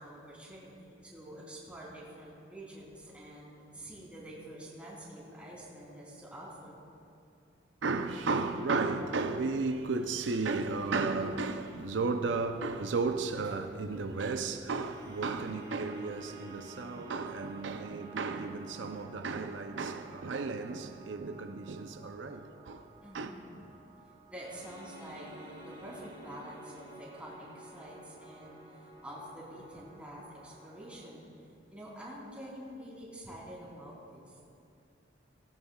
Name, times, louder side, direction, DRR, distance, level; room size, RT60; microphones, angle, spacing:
voice 1, 0.0-6.8 23.0-23.5 24.3-31.2 31.7-34.4, right 1 dB, 5° right, 3.2 m, -47 dB
voice 2, 7.8-22.9 23.1-23.3, right 3 dB, 85° right, 0.6 m, -34 dB
sound 1, 14.8-31.1, right 2 dB, 60° right, 2.4 m, -52 dB
17.0 x 16.5 x 2.4 m
head